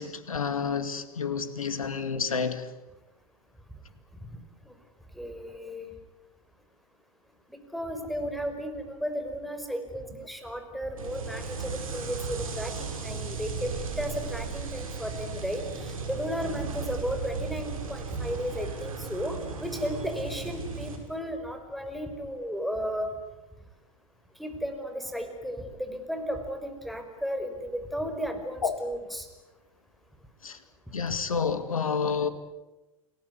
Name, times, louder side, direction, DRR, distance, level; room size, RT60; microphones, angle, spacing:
voice 1, 0.0-2.7 28.6-28.8 30.4-30.6 30.9-32.3, left 5 dB, 85° left, 11 dB, 2.3 m, -29 dB
voice 2, 5.1-5.9 7.5-23.1 24.4-29.3 31.1-31.2, equal, ahead, 7 dB, 5.3 m, -34 dB
sound 1, 11.0-21.0, right 5 dB, 80° right, 6.0 m, -36 dB
29.5 x 20.5 x 9.6 m, 1.1 s
hypercardioid pair, 90°, 17 cm